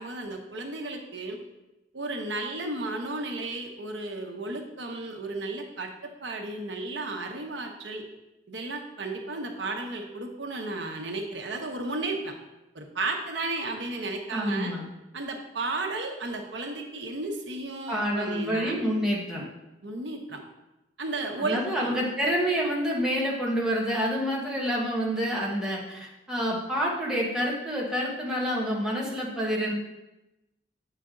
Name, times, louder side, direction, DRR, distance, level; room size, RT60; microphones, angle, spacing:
voice 1, 0.0-1.4 1.9-5.9 6.2-8.0 8.5-12.3 12.7-14.7 15.1-18.8 19.8-20.4 21.0-21.9, right 2 dB, 85° right, 3 dB, 1.0 m, -33 dB
voice 2, 14.3-14.8 17.9-19.4 21.4-29.7, equal, 5° right, -5 dB, 1.3 m, -28 dB
8.1 x 5.0 x 3.8 m, 0.96 s
head